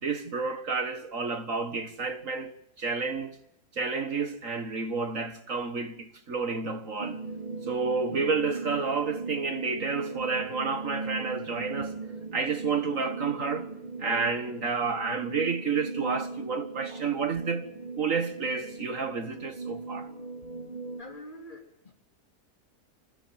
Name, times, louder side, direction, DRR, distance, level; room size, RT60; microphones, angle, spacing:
voice 1, 0.0-3.4 3.7-7.2 7.6-11.9 12.3-13.7 14.0-17.7 18.0-20.1, right 4 dB, 55° right, 1.8 m, -30 dB
sound 1, 7.0-21.0, right 3 dB, 25° right, 2.8 m, -39 dB
voice 2, 21.0-21.9, left 1 dB, 30° left, 3.5 m, -45 dB
27.0 x 15.5 x 9.5 m
omnidirectional pair, 1.7 m